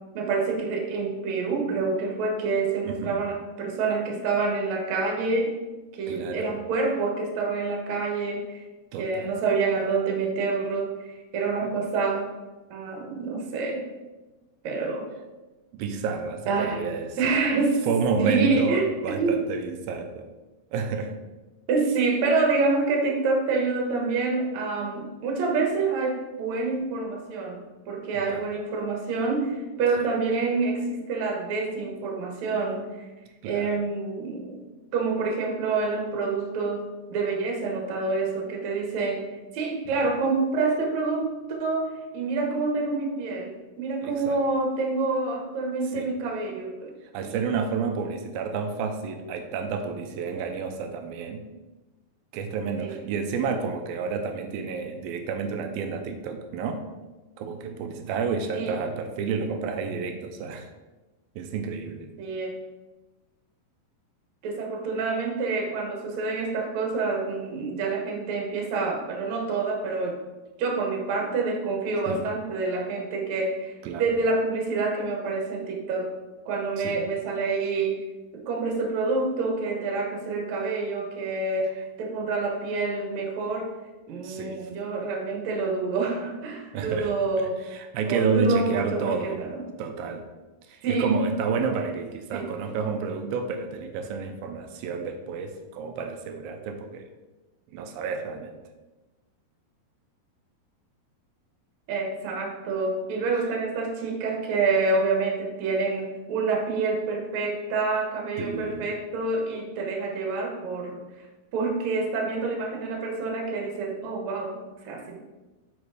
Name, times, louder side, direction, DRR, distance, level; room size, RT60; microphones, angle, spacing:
voice 1, 0.1-5.6 5.9-8.6 9.0-10.9 11.3-12.3 12.7-13.9 14.6-15.1 16.5-16.8 17.2-17.9 18.2-19.3 21.7-33.1 33.4-34.6 34.9-39.3 39.5-46.9 47.2-47.4 52.8-53.0 58.5-58.8 62.2-62.6 64.4-70.2 70.6-76.1 76.5-78.0 78.3-83.7 84.1-87.5 88.1-89.6 90.8-91.2 92.3-92.4 101.9-111.0 111.5-115.2, right 3 dB, 60° right, 1 dB, 2.2 m, -27 dB
voice 2, 2.9-3.2 6.1-6.6 8.9-9.3 15.7-17.4 17.9-20.3 20.7-21.1 28.3-28.4 30.0-30.1 33.4-33.7 39.9-40.0 44.0-44.4 45.9-46.1 47.1-51.5 52.3-56.8 57.4-60.7 61.4-62.1 72.1-72.2 73.8-74.1 76.8-77.0 84.2-84.6 86.7-87.1 87.4-89.4 89.8-90.2 90.7-97.1 97.7-98.5 108.4-108.9, right 5 dB, 80° right, 6 dB, 2.4 m, -30 dB
8.1 x 5.1 x 4.8 m, 1.2 s
omnidirectional pair, 4.4 m